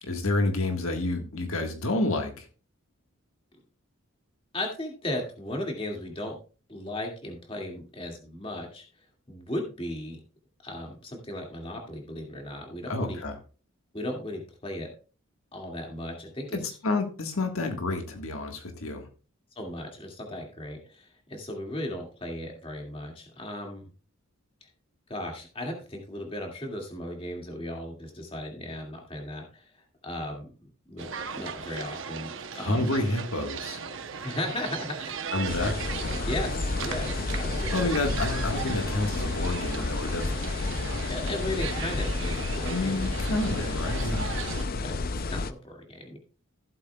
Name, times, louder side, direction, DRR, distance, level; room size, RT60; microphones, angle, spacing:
voice 1, 0.0-2.5 12.9-13.3 16.5-19.1 32.5-33.8 35.3-35.8 37.7-40.4 42.6-44.3, left 2 dB, 70° left, 3 dB, 1.6 m, -29 dB
voice 2, 4.5-6.4 6.7-8.8 9.3-10.2 10.6-13.2 13.9-14.9 15.5-16.8 19.6-23.9 24.6-24.7 25.1-30.5 30.9-32.9 34.2-35.1 36.2-38.0 41.1-43.0 44.8-46.2, left 1 dB, 25° left, 2 dB, 2.2 m, -36 dB
sound 1, 31.0-44.7, right 6 dB, 60° right, 0.8 m, -37 dB
sound 2, 35.5-45.5, left 3 dB, 40° left, 0.5 m, -31 dB
15.5 x 8.2 x 2.3 m, 0.36 s
head